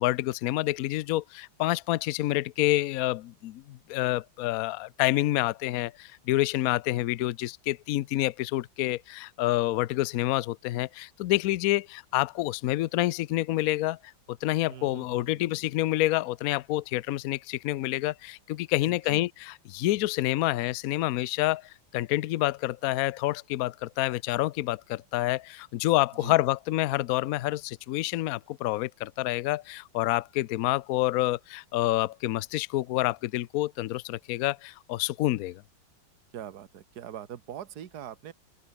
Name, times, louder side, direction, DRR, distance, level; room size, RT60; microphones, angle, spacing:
voice 1, 0.0-14.0 14.3-35.6, left 16 dB, 90° left, 0.7 m, -28 dB
voice 2, 14.7-15.6 18.8-19.3 26.1-26.4 36.3-38.3, right 10 dB, 55° right, 1.7 m, -43 dB
omnidirectional pair, 2.2 m